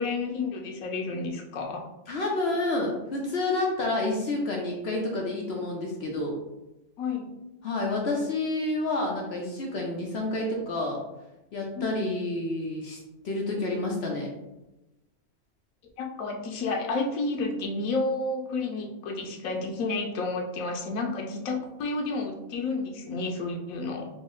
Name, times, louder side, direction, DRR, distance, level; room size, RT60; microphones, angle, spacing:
voice 1, 0.0-1.8 7.0-7.3 11.8-11.9 16.0-24.1, left 3 dB, 85° left, 1 dB, 1.0 m, -31 dB
voice 2, 2.1-6.3 7.6-11.0 11.5-13.0 13.2-14.3, left 2 dB, 60° left, -1 dB, 0.8 m, -29 dB
4.0 x 2.0 x 3.7 m, 0.94 s
omnidirectional pair, 1.4 m